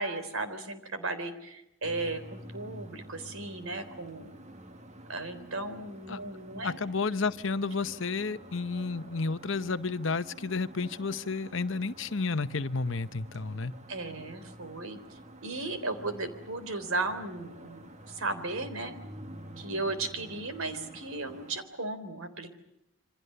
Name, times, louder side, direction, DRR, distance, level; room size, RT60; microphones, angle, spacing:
voice 1, 0.0-4.3 5.1-6.8 13.9-18.9 19.6-22.5, right 2 dB, 75° right, 10 dB, 3.6 m, -36 dB
sound 1, 1.8-21.6, right 1 dB, 30° right, 1.6 m, -49 dB
voice 2, 6.6-13.7, left 4 dB, 60° left, 13 dB, 0.9 m, -31 dB
28.0 x 25.0 x 6.8 m, 0.86 s
head